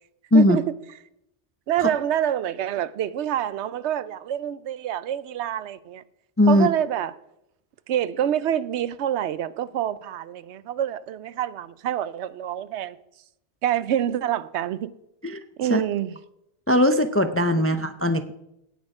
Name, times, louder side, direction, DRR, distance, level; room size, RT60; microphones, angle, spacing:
voice 1, 1.7-6.0 6.5-7.1 7.9-13.0 13.6-14.9 15.6-16.2 17.6-17.7, right 10 dB, 75° right, 0.9 m, -27 dB
voice 2, 6.4-6.7 15.2-15.4 15.7-15.8 16.7-18.3, left 1 dB, 25° left, 0.3 m, -19 dB
17.5 x 6.4 x 4.8 m
omnidirectional pair, 1.2 m